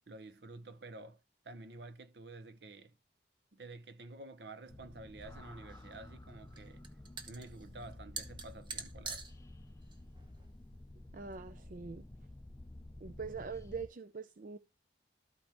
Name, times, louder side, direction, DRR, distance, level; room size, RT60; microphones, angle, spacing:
voice 1, 0.1-1.2 1.4-3.0 3.5-6.8 7.3-9.2, right 2 dB, 65° right, 0.8 m, -50 dB
sound 1, 4.7-13.9, left 1 dB, 15° left, 0.5 m, -52 dB
sound 2, 5.2-11.4, right 4 dB, 25° right, 1.0 m, -48 dB
voice 2, 11.1-12.1 13.0-14.6, right 5 dB, 50° right, 0.4 m, -43 dB
13.0 x 5.2 x 3.0 m
head